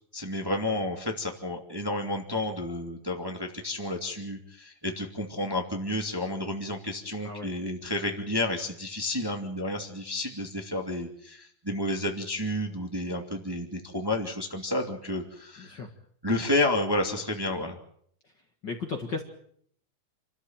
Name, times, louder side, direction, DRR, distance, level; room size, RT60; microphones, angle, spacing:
voice 1, 0.1-15.8 16.2-17.8, left 1 dB, 10° right, 2 dB, 2.1 m, -31 dB
voice 2, 7.2-7.5 15.6-15.9 18.6-19.2, left 4 dB, 40° left, 3 dB, 2.0 m, -35 dB
28.5 x 13.5 x 8.8 m, 0.66 s
omnidirectional pair, 3.6 m